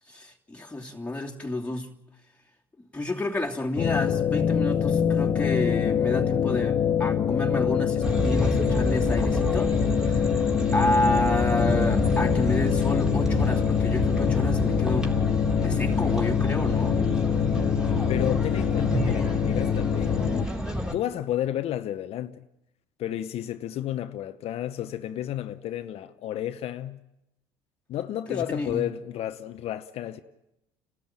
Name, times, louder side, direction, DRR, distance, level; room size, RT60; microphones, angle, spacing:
voice 1, 0.1-1.9 2.9-9.7 10.0-10.3 10.7-15.1 15.6-17.0 28.3-28.9, left 1 dB, 10° left, 2.8 m, -30 dB
sound 1, 3.8-20.5, left 8 dB, 40° left, 1.2 m, -24 dB
sound 2, 8.0-20.9, equal, 5° right, 3.5 m, -29 dB
voice 2, 18.1-20.3 20.9-22.4 23.0-27.0 27.9-30.2, left 12 dB, 55° left, 0.9 m, -31 dB
30.0 x 13.5 x 9.0 m
hypercardioid pair, 70°, 12 cm